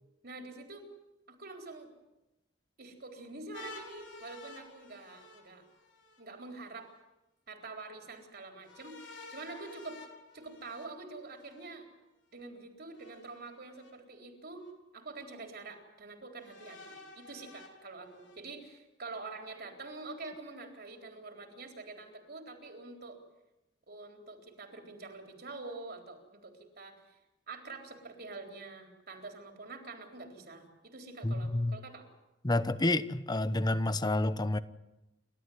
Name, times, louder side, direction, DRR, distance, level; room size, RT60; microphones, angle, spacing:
voice 1, 0.2-0.9 1.3-1.9 2.8-5.7 6.2-6.9 7.5-10.0 10.3-11.9 12.3-14.7 14.9-23.2 23.9-27.2 27.5-32.1, right 3 dB, 55° right, 3 dB, 3.9 m, -46 dB
sound 1, 3.5-6.2 8.6-11.7 12.9-13.9 14.6-14.7 16.4-18.4, left 3 dB, 80° left, 4.3 m, -51 dB
voice 2, 31.2-31.8 32.4-34.6, left 2 dB, 20° left, 14 dB, 0.9 m, -29 dB
29.5 x 13.0 x 9.5 m, 0.98 s
head